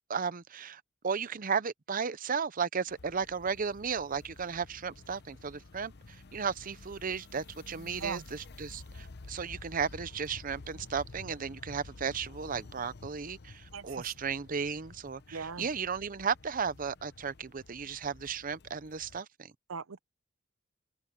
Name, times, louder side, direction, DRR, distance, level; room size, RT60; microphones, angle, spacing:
voice 1, 0.1-19.5, right 6 dB, 45° right, 0.7 m, -35 dB
sound 1, 2.9-19.2, left 3 dB, 55° left, 0.9 m, -51 dB
voice 2, 13.7-14.1 15.3-15.7 19.7-20.0, right 5 dB, 85° right, 0.7 m, -39 dB
open air
head